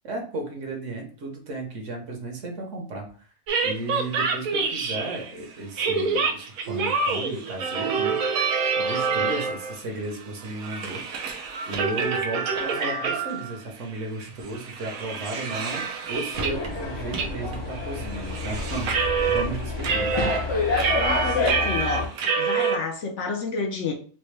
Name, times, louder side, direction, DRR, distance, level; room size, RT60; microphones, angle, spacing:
voice 1, 0.0-3.3 3.6-11.4 11.7-20.2, right 2 dB, 60° right, 2 dB, 1.2 m, -34 dB
sound 1, 3.5-5.3 5.8-9.8 10.1-13.6 13.9-14.0 14.4-16.7 17.1-17.3 17.5-19.5 19.8-22.8, right 5 dB, 80° right, 1.1 m, -27 dB
sound 2, 16.3-22.1, left 3 dB, 30° left, 0.5 m, -28 dB
voice 2, 21.0-22.1 22.4-23.9, left 4 dB, 65° left, 2 dB, 0.9 m, -29 dB
4.3 x 2.1 x 3.2 m, 0.43 s
omnidirectional pair, 1.5 m